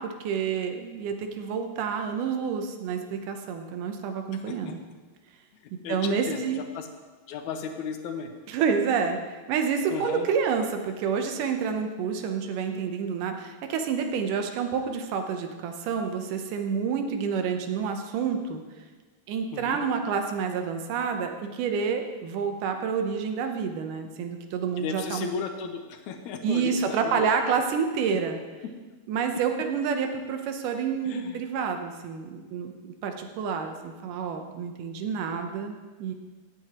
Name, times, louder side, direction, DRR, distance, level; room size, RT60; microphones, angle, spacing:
voice 1, 0.0-4.8 5.9-6.6 8.5-18.6 19.3-25.3 26.4-28.4 29.1-36.1, right 6 dB, 85° right, 5 dB, 2.5 m, -28 dB
voice 2, 5.8-6.9 7.3-8.3 9.9-10.3 19.5-19.8 24.8-27.6 28.1-28.2 31.1-31.4, left 6 dB, 75° left, 5 dB, 2.1 m, -35 dB
16.5 x 7.8 x 3.0 m, 1.3 s
omnidirectional pair, 3.6 m